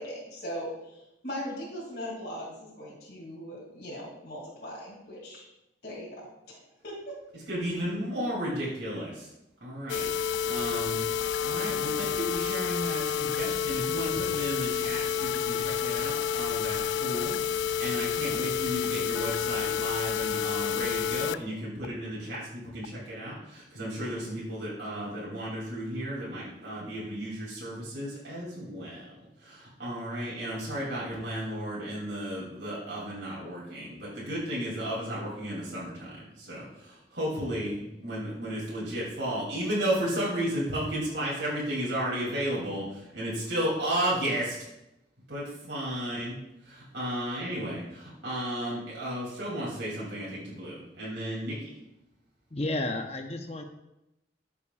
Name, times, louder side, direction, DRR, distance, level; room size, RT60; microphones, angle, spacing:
voice 1, 0.0-5.4 5.8-6.2 6.5-7.1, equal, 55° left, -6 dB, 2.6 m, -39 dB
voice 2, 7.5-9.3 9.6-10.1 10.4-29.1 29.4-36.1 36.4-44.6 45.3-46.4 46.6-51.7, right 1 dB, 80° right, -7 dB, 3.0 m, -33 dB
sound 1, 9.9-21.4 21.8-21.9 22.3-22.4 22.8-22.9, left 8 dB, 90° left, 0.3 m, -29 dB
voice 3, 52.5-53.6, left 2 dB, 35° left, 5 dB, 0.8 m, -31 dB
13.5 x 6.9 x 2.4 m, 0.90 s
head